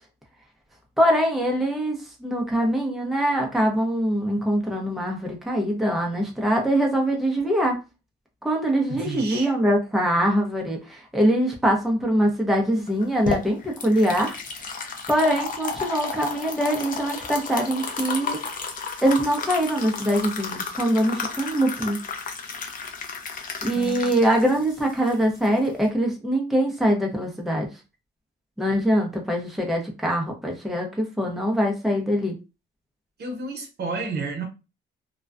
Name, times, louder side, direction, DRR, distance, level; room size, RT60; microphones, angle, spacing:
voice 1, 1.0-7.8 8.4-14.4 14.8-18.4 19.0-22.0 23.6-27.7 28.6-32.3, equal, ahead, 0.7 m, -23 dB
voice 2, 8.9-9.5 23.7-24.2 33.2-34.4, right 3 dB, 55° right, 0.8 m, -31 dB
sound 1, 12.9-25.9, left 4 dB, 45° left, 0.6 m, -33 dB
2.3 x 2.2 x 2.4 m
cardioid pair, 90°, 20 cm